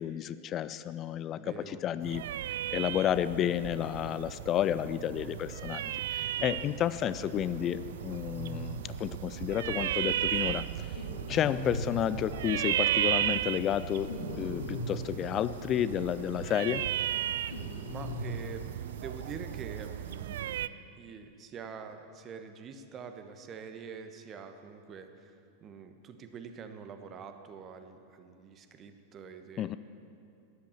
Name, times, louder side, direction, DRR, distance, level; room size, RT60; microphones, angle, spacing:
voice 1, 0.0-2.2 2.7-10.6 11.3-16.8 29.6-29.8, left 10 dB, 30° left, 15 dB, 0.4 m, -31 dB
voice 2, 1.4-1.8 6.4-6.6 17.9-20.6 21.0-29.8, right 6 dB, 30° right, 7 dB, 1.2 m, -45 dB
sound 1, 2.0-20.7, right 12 dB, 60° right, 0.3 m, -35 dB
sound 2, 5.7-6.3 6.7-6.8 7.0-7.1 7.3-7.4 7.6-10.1 10.4-12.6 12.9-15.8 16.1-16.2 16.5-19.2 19.5-19.6 19.8-20.6, left 1 dB, 65° left, 2.0 m, -41 dB
13.0 x 11.0 x 7.2 m, 2.6 s
figure-of-eight pair, 90°, 0 cm